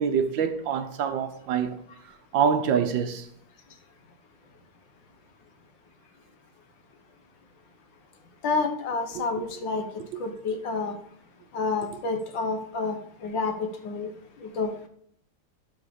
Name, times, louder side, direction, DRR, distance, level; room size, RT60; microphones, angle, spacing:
voice 1, 0.0-1.8 2.3-3.3 9.1-9.4 10.1-10.2, right 7 dB, 70° right, 1.4 m, -26 dB
voice 2, 8.4-9.8 10.2-11.0 11.5-13.0 13.2-13.5 13.8-14.1 14.6-14.7, left 4 dB, 65° left, 1.7 m, -28 dB
12.0 x 4.0 x 4.9 m
omnidirectional pair, 2.3 m